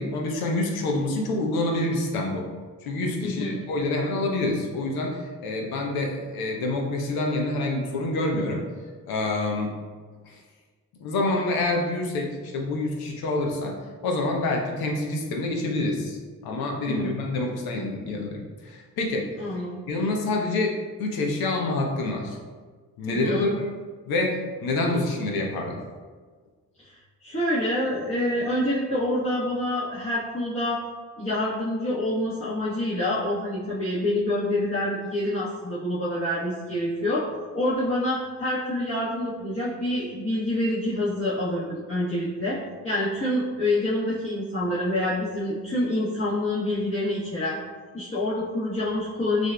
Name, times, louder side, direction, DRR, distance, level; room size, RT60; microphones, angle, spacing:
voice 1, 0.0-2.5 2.8-8.7 9.1-9.7 10.2-10.4 11.0-13.8 14.0-16.2 16.4-19.3 19.9-22.4 23.0-23.5 24.1-25.8, left 2 dB, 75° left, 1 dB, 0.8 m, -27 dB
voice 2, 3.2-3.7 16.9-17.1 19.4-19.9 23.1-23.6 26.8-30.8 31.2-37.3 37.5-47.6 47.9-49.5, left 1 dB, 35° left, -11 dB, 1.3 m, -27 dB
6.1 x 2.6 x 2.2 m, 1.5 s
supercardioid pair, 55°, 37 cm